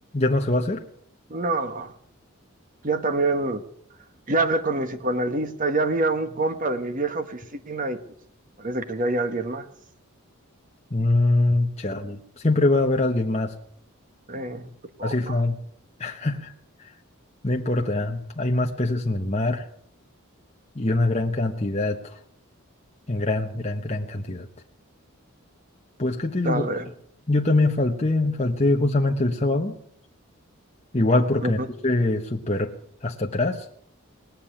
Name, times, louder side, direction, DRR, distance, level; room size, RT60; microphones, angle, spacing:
voice 1, 0.1-0.8 10.9-13.5 15.0-15.6 16.0-16.5 16.8-16.9 17.4-19.7 20.7-22.2 23.1-24.5 26.0-26.6 27.3-29.8 30.9-32.7 33.0-33.7, left 2 dB, 30° left, 2 dB, 1.1 m, -23 dB
voice 2, 1.3-1.9 2.8-3.7 4.3-8.0 8.6-9.7 14.3-14.7 15.0-15.4 26.4-26.9 31.4-31.7, right 2 dB, 40° right, 9 dB, 1.3 m, -26 dB
19.5 x 7.5 x 10.0 m, 0.68 s
head